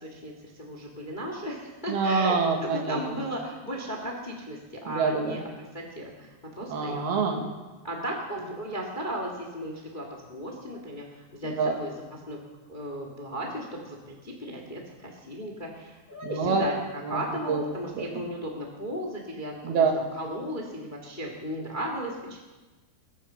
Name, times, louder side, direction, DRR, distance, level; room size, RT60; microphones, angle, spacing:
voice 1, 0.0-5.4 5.7-7.1 7.8-12.4 12.7-22.4, equal, 25° left, 1 dB, 1.1 m, -36 dB
voice 2, 1.9-3.0 4.9-5.4 6.7-7.5 11.5-11.7 16.2-16.6 17.1-17.2 17.5-17.6 18.0-18.1 19.7-19.9, right 5 dB, 80° right, 3 dB, 3.6 m, -25 dB
22.0 x 9.3 x 5.7 m, 1.2 s
omnidirectional pair, 4.4 m